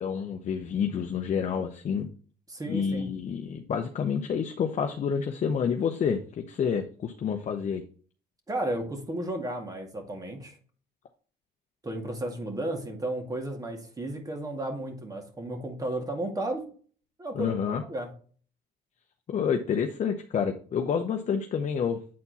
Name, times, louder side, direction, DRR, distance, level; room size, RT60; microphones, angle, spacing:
voice 1, 0.0-2.1 2.7-7.8 17.3-17.8 19.3-22.0, left 7 dB, 45° left, 5 dB, 0.8 m, -28 dB
voice 2, 2.5-3.1 8.5-10.6 11.8-16.6 17.2-17.5 17.9-18.1, right 1 dB, 20° right, 4 dB, 2.1 m, -33 dB
8.5 x 4.3 x 4.1 m, 0.43 s
cardioid pair, 110°, 17 cm